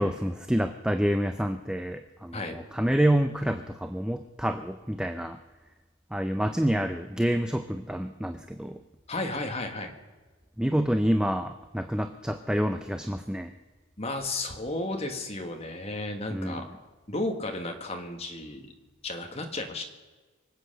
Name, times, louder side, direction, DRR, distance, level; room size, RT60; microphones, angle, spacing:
voice 1, 0.0-5.4 6.1-8.8 10.6-13.5 16.3-16.7, equal, 5° right, 8 dB, 0.4 m, -28 dB
voice 2, 9.1-9.9 14.0-16.6 17.1-18.7 19.0-19.8, left 2 dB, 30° left, 4 dB, 1.7 m, -33 dB
24.0 x 8.2 x 6.6 m, 1.3 s
head